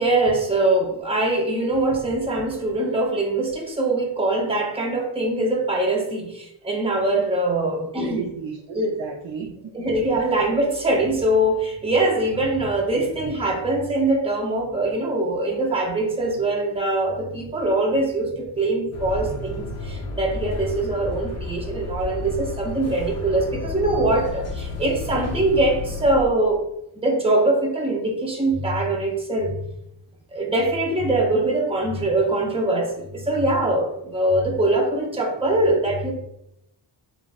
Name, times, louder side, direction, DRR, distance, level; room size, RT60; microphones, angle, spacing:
voice 1, 0.0-8.3 8.7-8.9 9.7-26.6 26.9-29.6 30.3-36.1, right 2 dB, 10° right, 1 dB, 0.6 m, -22 dB
voice 2, 7.6-9.9, right 6 dB, 70° right, 1 dB, 0.7 m, -34 dB
sound 1, 18.9-26.2, left 3 dB, 35° left, 0.6 m, -32 dB
7.1 x 2.4 x 2.3 m, 0.82 s
wide cardioid pair, 165°, 48 cm